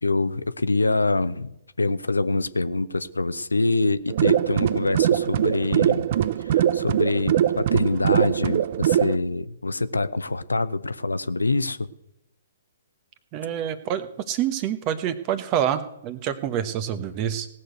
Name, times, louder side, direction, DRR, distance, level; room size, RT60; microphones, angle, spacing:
voice 1, 0.0-6.1 6.4-11.9, left 3 dB, 80° left, 0.6 m, -25 dB
sound 1, 4.1-9.2, right 11 dB, 45° right, 0.5 m, -22 dB
voice 2, 13.3-17.5, right 10 dB, 30° right, 1.1 m, -27 dB
17.5 x 6.5 x 7.9 m
figure-of-eight pair, 120°, 0 cm